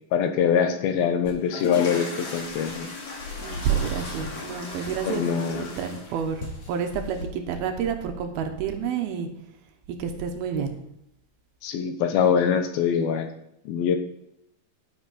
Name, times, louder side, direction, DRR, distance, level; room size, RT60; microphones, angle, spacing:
voice 1, 0.1-2.9 5.1-5.8 11.6-13.3 13.7-14.0, left 7 dB, 75° left, 6 dB, 2.7 m, -24 dB
sound 1, 1.2-7.2, left 3 dB, 45° left, 2.6 m, -36 dB
voice 2, 3.4-9.3 10.0-10.7, right 7 dB, 80° right, 6 dB, 2.9 m, -29 dB
10.0 x 10.0 x 4.2 m, 0.78 s
omnidirectional pair, 4.5 m